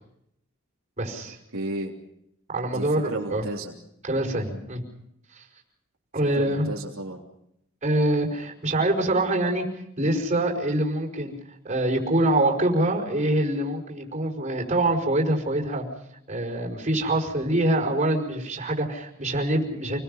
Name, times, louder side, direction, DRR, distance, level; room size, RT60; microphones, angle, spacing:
voice 1, 1.0-1.4 2.5-3.4 4.0-4.8 5.4-5.5 6.1-6.7 7.8-9.6 10.0-11.3 11.6-15.8 16.3-20.0, right 1 dB, 30° right, 1 dB, 5.3 m, -25 dB
voice 2, 1.5-1.9 2.7-3.7 6.4-7.2, right 2 dB, 70° right, -2 dB, 3.3 m, -33 dB
29.5 x 21.5 x 5.7 m, 0.77 s
head